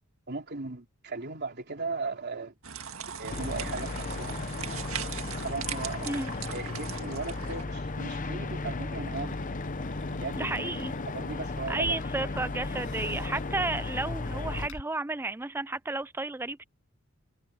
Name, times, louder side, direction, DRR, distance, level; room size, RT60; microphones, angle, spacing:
voice 1, 0.3-2.6 3.2-4.8 5.4-6.1 6.5-9.4 10.2-10.6 11.1-11.9, right 3 dB, 50° right, 3.3 m, -37 dB
sound 1, 2.6-7.6, right 8 dB, 80° right, 1.8 m, -39 dB
sound 2, 3.3-14.7, left 3 dB, 40° left, 0.9 m, -35 dB
Growling / Hiss, 9.1-14.8, left 1 dB, 70° left, 6.1 m, -46 dB
voice 2, 10.4-10.9 11.7-16.6, right 2 dB, 10° right, 0.4 m, -32 dB
head